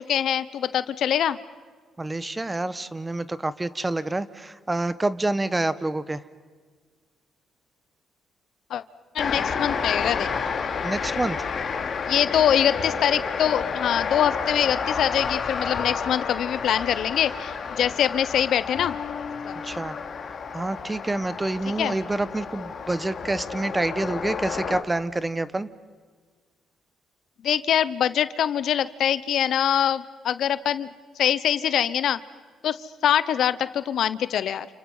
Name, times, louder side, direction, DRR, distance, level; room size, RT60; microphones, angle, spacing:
voice 1, 0.0-1.4 8.7-8.8 9.1-10.3 12.1-19.0 19.4-19.8 21.8-21.9 27.4-32.2 32.6-34.7, left 10 dB, 70° left, 15 dB, 0.9 m, -24 dB
voice 2, 2.0-6.2 10.8-11.5 19.6-20.0 20.5-25.7, right 2 dB, 15° right, 15 dB, 1.0 m, -27 dB
sound 1, 9.2-24.8, left 5 dB, 50° left, 2.6 m, -30 dB
sound 2, 15.7-17.3 18.7-20.4, left 6 dB, 85° left, 4.4 m, -41 dB
30.0 x 29.5 x 5.6 m, 1.5 s
cardioid pair, 90°, 0 cm